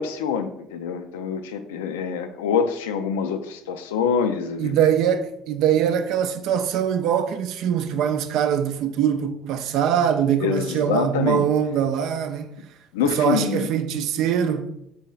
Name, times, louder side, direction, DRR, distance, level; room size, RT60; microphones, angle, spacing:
voice 1, 0.0-4.8 10.4-11.5 12.9-13.7, left 6 dB, 80° left, 0.4 m, -25 dB
voice 2, 4.6-12.6 13.0-14.7, right 9 dB, 65° right, 0.4 m, -22 dB
4.1 x 3.0 x 3.9 m
hypercardioid pair, 60°, 0 cm